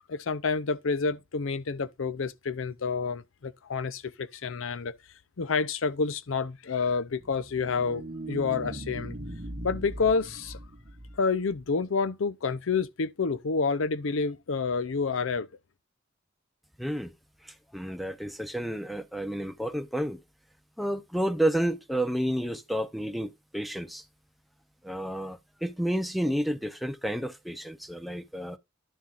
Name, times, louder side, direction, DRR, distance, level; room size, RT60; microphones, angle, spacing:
voice 1, 0.1-4.9 5.4-8.0 8.3-9.2 9.6-10.6 11.2-15.5, left 4 dB, 80° left, 0.6 m, -29 dB
sound 1, 7.1-11.6, right 1 dB, 50° right, 1.2 m, -40 dB
voice 2, 16.8-17.1 17.4-20.2 20.8-24.0 24.8-28.6, right 1 dB, ahead, 0.6 m, -31 dB
11.0 x 7.0 x 2.5 m
head